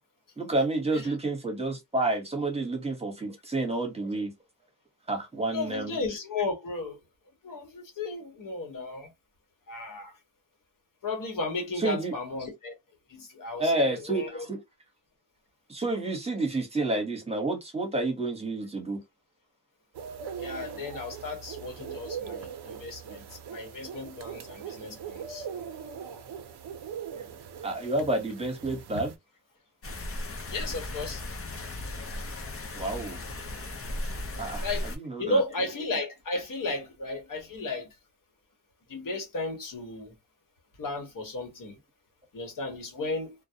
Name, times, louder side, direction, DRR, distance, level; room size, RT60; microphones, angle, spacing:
voice 1, 0.4-4.3 5.1-6.0 11.8-12.1 13.6-14.6 15.7-19.0 27.2-27.3 27.6-29.1 32.7-33.2 34.4-35.4, right 2 dB, 15° right, 0.9 m, -29 dB
voice 2, 5.5-7.0 7.4-9.1 9.7-10.1 11.0-12.7 13.1-14.4 20.4-23.2 23.5-25.4 30.5-31.2 34.6-34.9 35.2-37.9 38.9-40.1 40.8-41.7 42.3-43.3, left 2 dB, 55° left, 1.0 m, -34 dB
sound 1, 19.9-29.2, right 7 dB, 75° right, 0.6 m, -40 dB
sound 2, 29.8-35.0, left 1 dB, 35° left, 0.6 m, -36 dB
2.2 x 2.0 x 2.7 m
wide cardioid pair, 125°, 40 cm